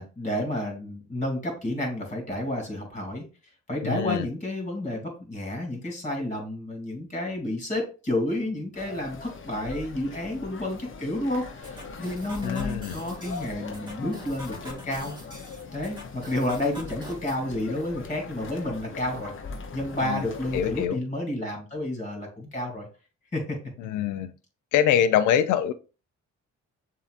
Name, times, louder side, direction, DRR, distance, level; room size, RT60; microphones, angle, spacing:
voice 1, 0.0-3.2 3.7-15.1 15.7-19.3 19.7-22.9 23.3-23.6, left 1 dB, 25° left, 2 dB, 2.6 m, -30 dB
voice 2, 3.8-4.3 12.4-13.0 20.0-20.2 20.5-21.0 23.8-24.3 24.7-25.7, left 10 dB, 80° left, 12 dB, 0.5 m, -24 dB
sound 1, 8.7-20.9, left 4 dB, 40° left, 0.8 m, -41 dB
sound 2, 11.6-17.4, equal, 15° right, 2.1 m, -45 dB
6.9 x 2.9 x 2.5 m, 0.33 s
cardioid pair, 90°, 30 cm